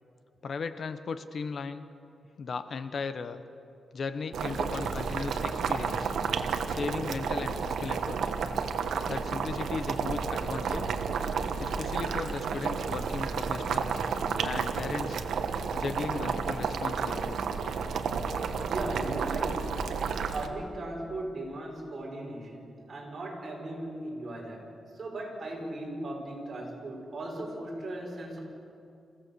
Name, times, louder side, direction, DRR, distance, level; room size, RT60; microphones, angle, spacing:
voice 1, 0.4-1.9 2.4-3.4 3.9-6.1 6.7-8.3 9.1-10.9 11.6-14.0 14.4-15.2 15.7-17.5, left 5 dB, 50° left, 11 dB, 1.0 m, -36 dB
Boiling, 4.3-20.5, right 6 dB, 80° right, 1.3 m, -31 dB
voice 2, 18.3-19.7 20.3-28.4, right 1 dB, 35° right, -2 dB, 5.7 m, -38 dB
27.0 x 16.0 x 6.9 m, 2.6 s
wide cardioid pair, 125°, 0 cm